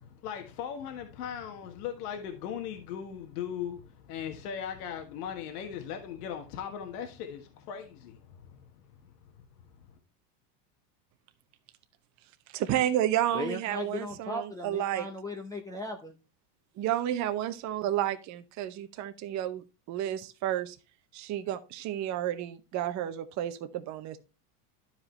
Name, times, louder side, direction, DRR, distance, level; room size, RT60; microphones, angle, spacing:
voice 1, 0.2-8.6, left 8 dB, 75° left, 1.5 m, -38 dB
voice 2, 12.5-15.1 16.8-20.8 21.1-24.2, right 12 dB, 40° right, 0.8 m, -31 dB
voice 3, 13.3-16.2, left 2 dB, 10° left, 0.7 m, -37 dB
12.0 x 4.9 x 3.2 m
supercardioid pair, 125°, 46 cm